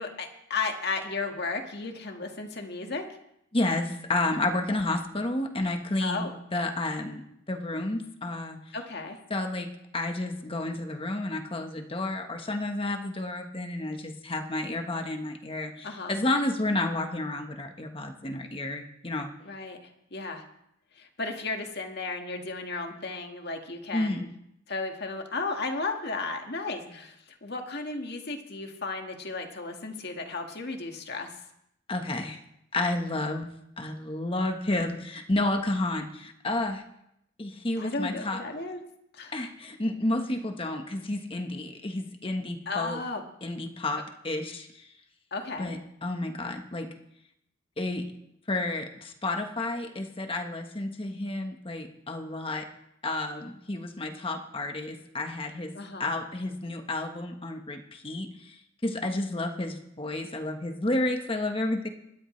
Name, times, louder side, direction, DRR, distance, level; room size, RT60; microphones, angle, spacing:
voice 1, 0.0-3.1 6.0-6.3 8.7-9.2 15.8-16.1 19.4-20.4 20.9-24.3 24.7-31.4 37.8-38.8 39.1-39.3 42.7-43.2 45.3-45.7 55.7-56.1, left 3 dB, 55° left, 3 dB, 1.8 m, -34 dB
voice 2, 3.5-7.2 7.5-8.7 9.3-9.7 9.9-19.3 23.9-24.2 31.9-32.4 32.7-33.5 33.8-36.8 37.4-38.4 39.3-43.0 43.4-44.9 45.6-46.9 47.8-48.0 48.5-52.7 53.0-55.7 56.0-58.6 58.8-61.9, left 2 dB, 25° left, 5 dB, 1.3 m, -31 dB
25.5 x 12.5 x 3.3 m, 0.78 s
head